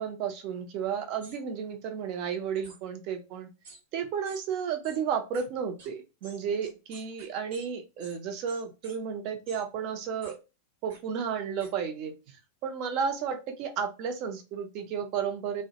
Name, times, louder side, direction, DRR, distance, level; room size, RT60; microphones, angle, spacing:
voice 1, 0.0-3.5 3.9-10.4 10.8-12.1 12.6-15.6, right 7 dB, 40° right, 6 dB, 0.5 m, -32 dB
sound 1, 1.2-1.4 2.6-2.8 3.6-3.8 4.2-4.4 4.8-5.0 5.3-5.4 5.8-5.9 6.2-7.6 8.0-8.2 8.5-9.0 9.4-9.6 10.2-10.3 10.9-11.0 11.6-11.7, right 3 dB, 60° right, 0.9 m, -50 dB
2.2 x 2.0 x 2.7 m, 0.28 s
figure-of-eight pair, 90°, 0 cm